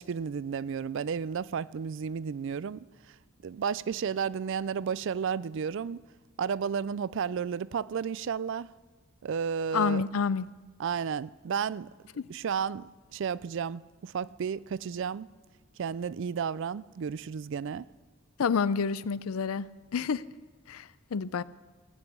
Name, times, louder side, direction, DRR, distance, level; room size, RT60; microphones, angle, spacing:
voice 1, 0.0-3.2 3.4-6.1 6.4-8.7 9.2-10.0 10.8-11.9 12.3-15.3 15.8-17.9, right 7 dB, 60° right, 0.4 m, -32 dB
voice 2, 9.7-10.5 12.2-12.3 18.4-20.2 20.7-21.4, left 5 dB, 85° left, 0.5 m, -29 dB
16.5 x 8.2 x 8.4 m
head